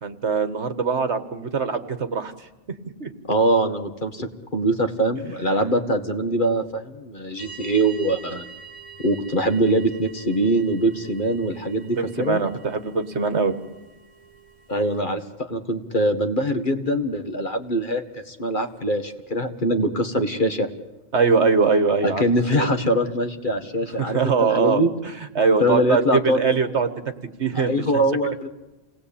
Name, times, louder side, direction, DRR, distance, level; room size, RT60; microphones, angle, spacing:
voice 1, 0.0-2.3 3.0-3.1 12.0-13.5 21.1-22.7 24.0-26.9 27.4-27.7, right 5 dB, 65° right, 10 dB, 1.8 m, -22 dB
voice 2, 3.3-8.4 9.0-12.4 14.7-20.7 22.0-24.2 24.5-24.9 25.6-26.4 27.6-28.5, right 1 dB, 40° left, 6 dB, 1.9 m, -23 dB
sound 1, 7.4-15.0, right 5 dB, 60° left, 3.4 m, -45 dB
28.5 x 19.5 x 8.6 m, 1.1 s
omnidirectional pair, 1.2 m